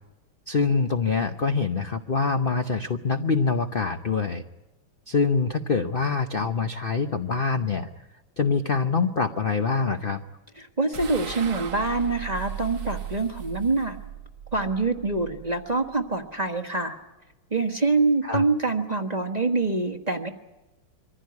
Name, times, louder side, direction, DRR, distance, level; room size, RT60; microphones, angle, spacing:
voice 1, 0.5-4.4 5.1-7.9 8.4-10.2 18.2-18.4, left 4 dB, 50° left, 6 dB, 0.6 m, -25 dB
voice 2, 10.6-14.0 14.5-17.0 17.5-20.3, right 3 dB, 25° right, 5 dB, 1.1 m, -25 dB
sound 1, 10.9-16.3, right 8 dB, 90° right, 2.3 m, -38 dB
24.0 x 15.5 x 9.7 m, 1.0 s
omnidirectional pair, 2.2 m